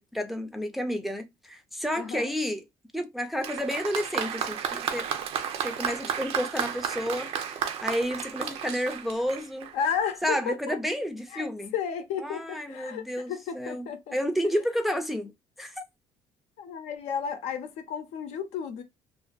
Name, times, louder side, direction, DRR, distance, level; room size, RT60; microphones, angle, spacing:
voice 1, 0.0-2.6 2.9-5.1 5.6-9.7 10.2-11.7 12.2-15.3 15.6-15.8, equal, ahead, 0.4 m, -31 dB
voice 2, 2.0-2.3 9.7-10.8 11.3-14.2 14.4-14.5 16.6-18.8, left 7 dB, 80° left, 0.6 m, -33 dB
Applause, 3.4-9.9, right 8 dB, 65° right, 0.5 m, -32 dB
2.5 x 2.5 x 2.3 m
cardioid pair, 125°, 11 cm